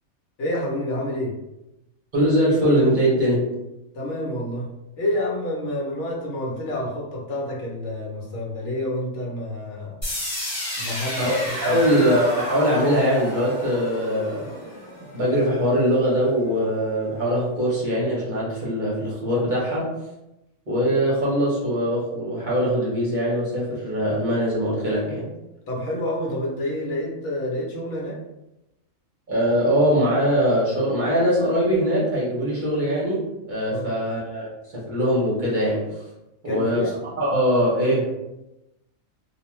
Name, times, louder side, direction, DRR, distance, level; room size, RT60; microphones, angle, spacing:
voice 1, 0.4-1.3 3.9-10.0 10.8-11.3 11.6-11.8 25.7-28.2 33.7-33.9 36.4-36.9, left 1 dB, 65° left, -2 dB, 1.0 m, -28 dB
voice 2, 2.1-3.5 11.2-11.3 11.6-14.5 15.0-20.0 20.7-25.3 29.3-36.0 36.4-36.9 37.2-38.1, equal, 45° right, -6 dB, 0.8 m, -22 dB
sound 1, 10.0-15.9, equal, 25° left, 0.9 m, -32 dB
2.4 x 2.3 x 3.0 m, 0.93 s
omnidirectional pair, 1.4 m